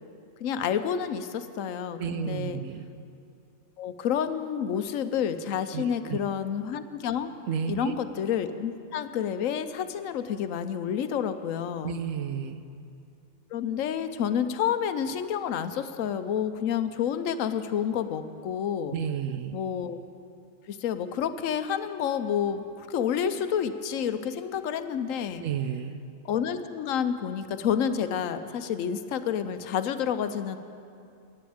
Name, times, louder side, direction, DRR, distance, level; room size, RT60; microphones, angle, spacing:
voice 1, 0.4-2.6 3.8-7.3 7.7-12.0 13.5-19.0 19.5-20.0 20.7-25.4 26.2-30.6, left 8 dB, 80° left, 11 dB, 1.0 m, -29 dB
voice 2, 2.0-2.9 5.7-6.2 7.5-7.9 11.8-12.6 18.9-19.6 25.4-26.0, right 8 dB, 75° right, 10 dB, 1.0 m, -32 dB
10.5 x 9.5 x 8.7 m, 2.5 s
omnidirectional pair, 1.4 m